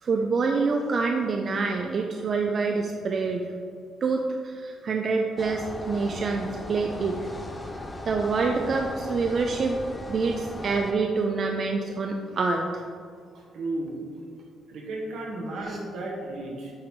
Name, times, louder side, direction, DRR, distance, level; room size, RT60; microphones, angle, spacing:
voice 1, 0.0-3.5 4.0-7.2 8.1-9.8 10.1-12.8 15.7-15.8, right 4 dB, 50° right, 3 dB, 0.4 m, -26 dB
sound 1, 5.4-10.9, left 1 dB, 20° left, 0.6 m, -38 dB
voice 2, 13.3-14.1 14.7-16.7, right 2 dB, 85° right, -2 dB, 1.3 m, -34 dB
8.5 x 3.0 x 3.6 m, 2.2 s
cardioid pair, 90°, 0 cm